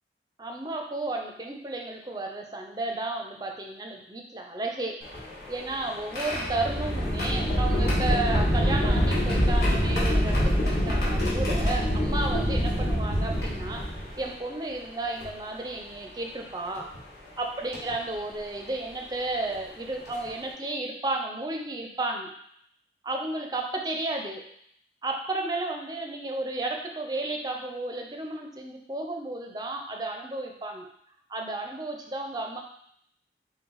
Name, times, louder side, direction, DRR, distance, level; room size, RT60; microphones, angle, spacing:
voice 1, 0.4-5.0 5.5-13.9 14.2-16.9 17.4-22.3 23.0-24.4 25.0-30.9 31.3-32.6, right 2 dB, 20° right, 2 dB, 0.5 m, -33 dB
sound 1, 5.0-14.3 15.2-15.3 16.8-17.0 17.7-17.9 19.5-19.6 20.1-20.3, equal, 60° left, 1.6 m, -25 dB
5.6 x 2.2 x 4.0 m, 0.69 s
head